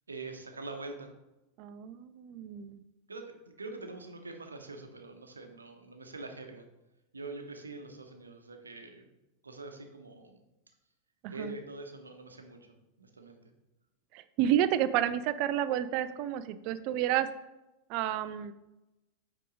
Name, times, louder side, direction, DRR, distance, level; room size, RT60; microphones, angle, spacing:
voice 1, 0.1-1.1 3.1-6.7 7.1-9.1 9.4-10.4 11.3-13.4, right 3 dB, 75° right, 5 dB, 0.9 m, -44 dB
voice 2, 1.6-2.8 11.2-11.5 14.1-17.3 17.9-18.5, right 11 dB, 45° right, 13 dB, 0.4 m, -30 dB
8.2 x 3.7 x 3.8 m, 0.97 s
figure-of-eight pair, 90°, 0 cm